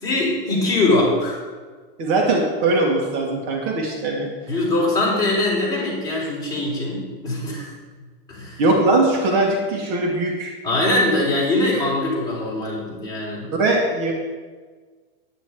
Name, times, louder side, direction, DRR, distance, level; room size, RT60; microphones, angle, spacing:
voice 1, 0.0-1.4 4.5-7.7 8.3-8.6 10.6-13.5, left 2 dB, 10° left, -6 dB, 3.9 m, -22 dB
voice 2, 2.0-4.3 8.6-10.5 13.5-14.1, right 2 dB, 45° right, 0 dB, 1.9 m, -20 dB
9.8 x 9.1 x 4.8 m, 1.4 s
supercardioid pair, 150°, 30 cm